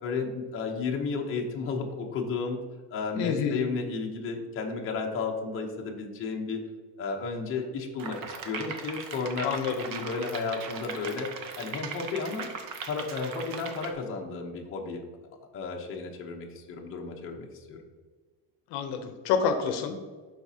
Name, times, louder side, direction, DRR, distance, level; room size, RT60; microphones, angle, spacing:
voice 1, 0.0-2.6 2.9-6.6 7.0-9.5 9.9-11.3 11.6-12.5 12.8-15.0 15.5-17.8, left 4 dB, 30° left, 0 dB, 0.8 m, -33 dB
voice 2, 3.2-3.6 9.4-9.8 18.7-20.0, left 6 dB, 65° left, 7 dB, 0.8 m, -28 dB
sound 1, 8.0-13.9, right 5 dB, 50° right, 0.8 m, -39 dB
11.0 x 4.1 x 2.8 m, 1.4 s
cardioid pair, 170°, 42 cm